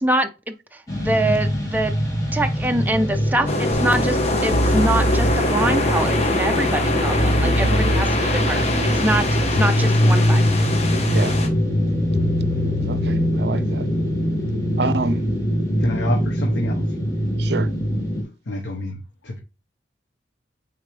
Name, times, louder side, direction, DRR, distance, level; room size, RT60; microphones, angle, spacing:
voice 1, 0.0-2.0 2.3-8.6 8.9-9.3 9.6-10.4, right 1 dB, 10° right, 0.5 m, -24 dB
sound 1, 0.9-18.2, equal, 20° left, 3.5 m, -23 dB
sound 2, 3.5-11.5, left 2 dB, 35° left, 1.1 m, -25 dB
sound 3, 3.7-15.1, left 1 dB, 50° left, 0.7 m, -24 dB
voice 2, 7.4-8.0 11.1-11.4 12.9-13.9 14.8-15.3 17.4-17.7, right 3 dB, 65° right, 0.6 m, -27 dB
voice 3, 15.8-17.0 18.5-19.4, left 1 dB, 85° left, 1.2 m, -28 dB
8.8 x 3.7 x 3.3 m
head